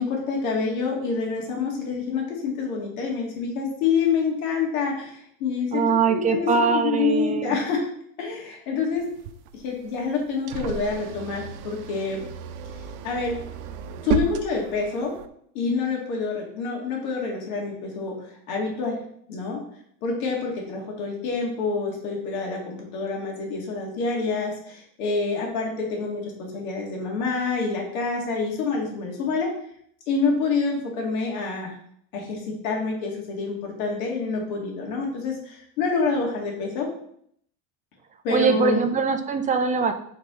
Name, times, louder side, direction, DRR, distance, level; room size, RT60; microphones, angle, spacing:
voice 1, 0.0-7.9 8.2-9.1 9.5-12.3 13.0-13.4 14.0-15.1 15.5-19.0 19.3-19.6 20.0-29.5 30.1-31.8 32.1-36.9 38.2-38.8, left 4 dB, 85° left, -1 dB, 2.4 m, -27 dB
voice 2, 5.7-7.6 38.3-39.9, right 5 dB, 20° right, 6 dB, 0.7 m, -22 dB
sound 1, 9.0-15.3, right 7 dB, 80° right, 0.8 m, -33 dB
8.5 x 4.1 x 3.8 m, 0.66 s
supercardioid pair, 140°, 42 cm